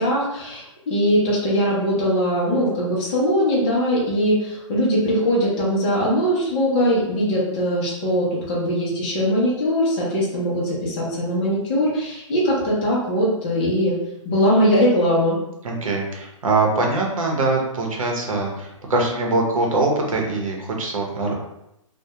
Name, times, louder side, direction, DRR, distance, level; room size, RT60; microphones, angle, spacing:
voice 1, 0.0-14.0 14.2-15.4, equal, 15° left, -7 dB, 0.4 m, -21 dB
voice 2, 15.6-21.3, right 2 dB, 80° right, 1 dB, 0.8 m, -22 dB
2.2 x 2.1 x 2.7 m, 0.83 s
hypercardioid pair, 170°, 17 cm